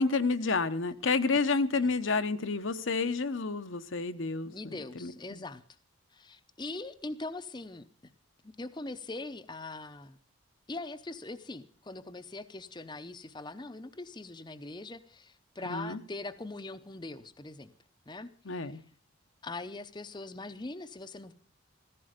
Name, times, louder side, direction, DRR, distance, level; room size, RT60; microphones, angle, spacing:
voice 1, 0.0-4.5 5.0-5.4 15.6-16.0 18.5-18.8, left 4 dB, 65° left, 0.9 m, -29 dB
voice 2, 4.4-5.6 6.1-7.8 8.4-10.2 10.7-17.7 18.1-18.3 18.6-18.8 19.4-21.3, left 2 dB, 20° left, 0.7 m, -41 dB
15.5 x 14.5 x 5.1 m
head